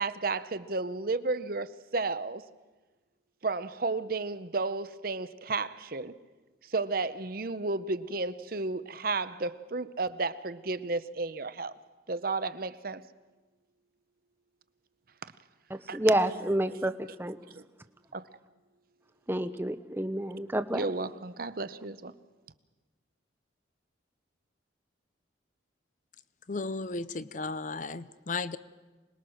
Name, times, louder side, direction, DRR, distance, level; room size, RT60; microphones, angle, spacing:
voice 1, 0.0-2.4 3.4-6.2 6.7-11.7 12.1-13.0 15.9-16.0 16.7-16.9 17.5-17.6 18.1-18.3 20.7-22.1, right 3 dB, 50° right, 14 dB, 0.8 m, -33 dB
voice 2, 15.7-17.4 19.3-20.8, right 1 dB, 10° right, 11 dB, 0.7 m, -29 dB
voice 3, 26.5-28.6, left 3 dB, 40° left, 16 dB, 0.6 m, -34 dB
26.0 x 20.5 x 6.4 m, 1.3 s
head